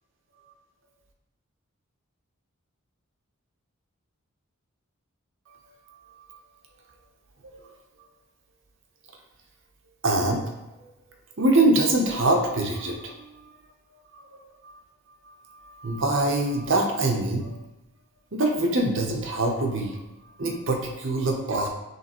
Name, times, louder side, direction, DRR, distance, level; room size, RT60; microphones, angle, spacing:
voice 1, 10.0-10.5 10.8-10.9 11.4-13.6 13.9-14.7 15.2-17.6 18.3-20.0 20.4-21.7, right 2 dB, 60° right, 2 dB, 0.8 m, -25 dB
5.5 x 3.2 x 3.0 m, 0.99 s
head